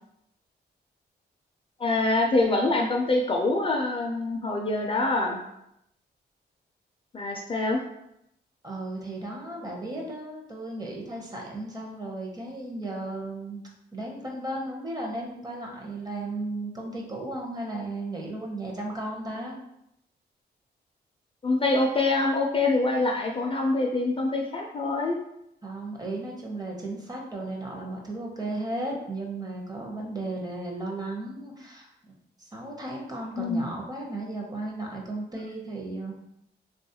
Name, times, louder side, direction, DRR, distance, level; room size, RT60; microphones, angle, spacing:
voice 1, 1.8-5.4 7.1-7.8 21.4-25.2 33.4-33.6, left 2 dB, 30° left, 1 dB, 0.3 m, -25 dB
voice 2, 8.6-13.6 13.9-19.6 25.6-31.9 32.4-36.1, right 2 dB, 20° right, -1 dB, 0.6 m, -35 dB
3.4 x 2.3 x 2.7 m, 0.80 s
wide cardioid pair, 130°, 17 cm